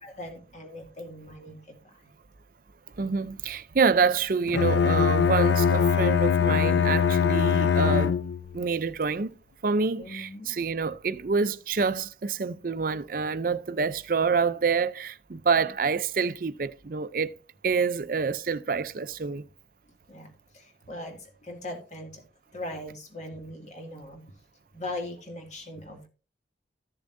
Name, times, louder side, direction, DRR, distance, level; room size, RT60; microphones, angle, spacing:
voice 1, 0.0-2.0 10.0-10.6 20.1-22.2 22.5-24.2 24.7-26.1, left 1 dB, 40° left, 2.2 m, -40 dB
voice 2, 3.0-8.2 8.5-9.3 9.6-17.3 17.6-19.4, right 5 dB, 50° right, 0.5 m, -27 dB
Bowed string instrument, 4.5-8.6, left 7 dB, 80° left, 0.4 m, -22 dB
14.0 x 7.0 x 2.6 m
head